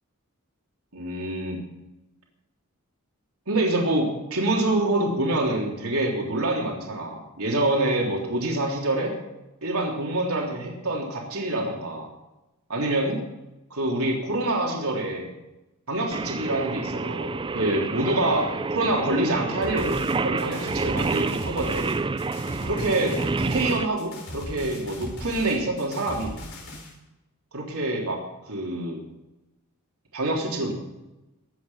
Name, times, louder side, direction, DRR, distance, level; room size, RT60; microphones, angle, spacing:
voice 1, 0.9-1.6 3.5-9.1 9.6-12.1 12.7-13.2 13.7-15.3 15.9-21.9 22.6-26.3 27.5-28.2 28.5-29.0 30.1-30.7, right 2 dB, 80° right, -1 dB, 3.5 m, -26 dB
Singing, 16.1-23.8, right 3 dB, 20° right, 0.4 m, -28 dB
sound 1, 19.6-26.9, equal, 65° left, 5.2 m, -38 dB
21.5 x 8.7 x 5.7 m, 1.0 s
head